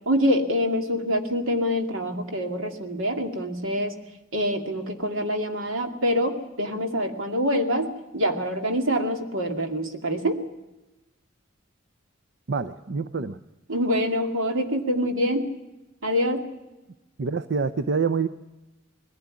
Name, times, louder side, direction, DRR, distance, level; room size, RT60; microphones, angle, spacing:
voice 1, 0.1-3.9 4.3-10.4 13.7-15.5 16.0-16.5, equal, 75° right, 5 dB, 2.4 m, -25 dB
voice 2, 12.5-13.4 17.2-18.3, right 5 dB, 55° right, 12 dB, 0.6 m, -26 dB
20.5 x 15.5 x 9.7 m, 1.0 s
head